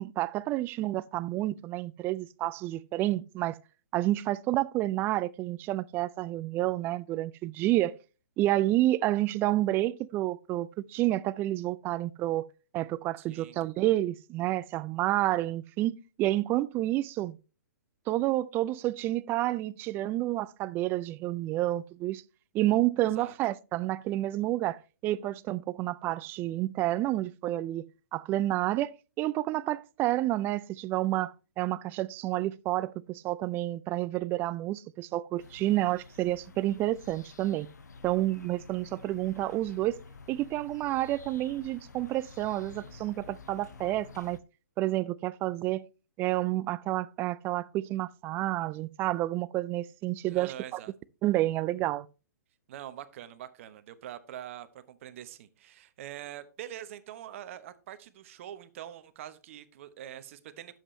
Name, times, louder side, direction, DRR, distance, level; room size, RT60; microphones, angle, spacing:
voice 1, 0.0-3.6 3.9-8.0 8.4-12.5 12.7-17.4 18.1-22.2 22.5-37.7 38.0-40.0 40.3-44.4 44.8-45.9 46.2-50.8 51.2-52.1, right 15 dB, 25° right, 0.3 m, -29 dB
voice 2, 13.2-13.6 23.0-23.3 50.3-50.9 52.7-60.8, right 11 dB, 50° right, 1.0 m, -44 dB
sound 1, 35.4-44.4, left 4 dB, 80° left, 1.0 m, -50 dB
9.9 x 7.6 x 3.2 m
hypercardioid pair, 125°, 9 cm